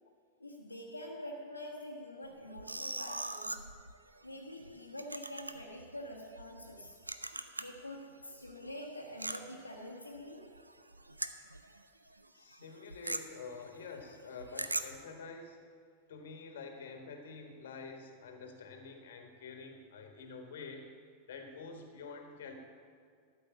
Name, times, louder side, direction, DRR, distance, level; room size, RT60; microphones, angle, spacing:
voice 1, 0.4-3.6 4.2-7.0 7.6-10.5, left 1 dB, 85° left, -2 dB, 1.2 m, -46 dB
sound 1, 2.2-7.9 8.2-11.8 12.1-12.3 12.5-15.0, right 2 dB, 85° right, 0.5 m, -42 dB
voice 2, 12.3-15.6 16.1-20.9 21.3-22.6, left 4 dB, 60° left, 4 dB, 1.5 m, -47 dB
12.5 x 5.5 x 8.0 m, 2.2 s
figure-of-eight pair, 90°, 0 cm